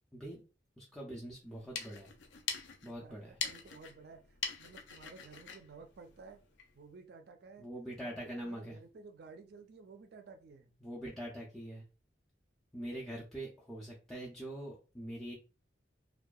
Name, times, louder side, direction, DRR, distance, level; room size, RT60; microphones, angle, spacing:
voice 1, 0.8-2.1 2.8-3.4 7.6-8.8 10.8-11.8 12.7-15.3, right 1 dB, 5° left, -5 dB, 0.4 m, -43 dB
sound 1, 1.4-6.8, left 6 dB, 80° left, 0.4 m, -43 dB
voice 2, 2.9-6.4 6.8-7.7 8.0-10.7, right 4 dB, 60° right, 7 dB, 0.4 m, -54 dB
2.6 x 2.2 x 2.3 m, 0.34 s
head